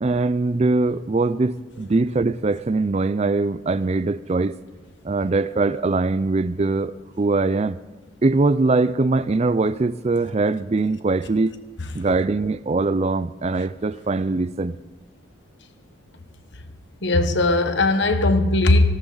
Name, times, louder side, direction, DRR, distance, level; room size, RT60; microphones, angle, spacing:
voice 1, 0.0-4.6 5.0-7.8 8.2-11.5 11.9-14.8, right 3 dB, 30° right, 16 dB, 0.4 m, -22 dB
voice 2, 17.0-18.8, left 2 dB, 55° left, 9 dB, 1.2 m, -18 dB
18.0 x 17.5 x 4.0 m, 1.3 s
head